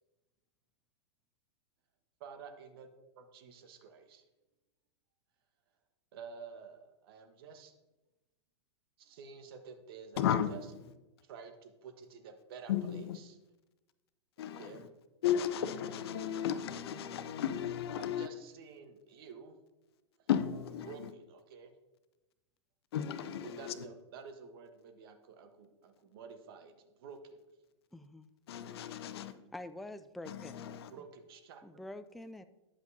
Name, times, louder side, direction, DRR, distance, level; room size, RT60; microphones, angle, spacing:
voice 1, 2.2-4.2 6.1-7.7 9.0-10.6 11.2-13.4 14.4-14.9 18.0-19.6 20.2-20.3 20.8-21.7 23.4-27.4 30.9-31.8, right 5 dB, 55° right, 1.3 m, -51 dB
voice 2, 10.2-10.5 12.7-13.2 14.4-14.7 15.2-18.3 20.3-21.1 22.9-23.7 28.5-29.3 30.3-30.9, left 9 dB, 60° left, 0.8 m, -34 dB
voice 3, 27.9-28.3 29.5-30.6 31.0-31.1 31.6-32.4, left 1 dB, ahead, 0.3 m, -46 dB
10.0 x 8.0 x 2.8 m
figure-of-eight pair, 100°, 15 cm